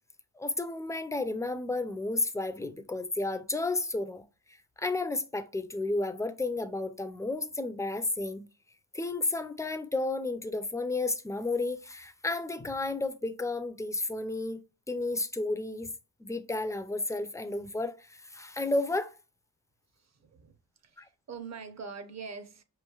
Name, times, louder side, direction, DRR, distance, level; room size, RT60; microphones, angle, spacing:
voice 1, 0.4-4.2 4.8-8.4 8.9-14.6 14.9-15.9 16.2-19.1 21.0-21.1, left 2 dB, 10° left, 0.3 m, -32 dB
voice 2, 19.9-20.6 20.8-22.6, right 5 dB, 45° right, 0.6 m, -44 dB
4.9 x 3.1 x 2.2 m
cardioid pair, 105°, 39 cm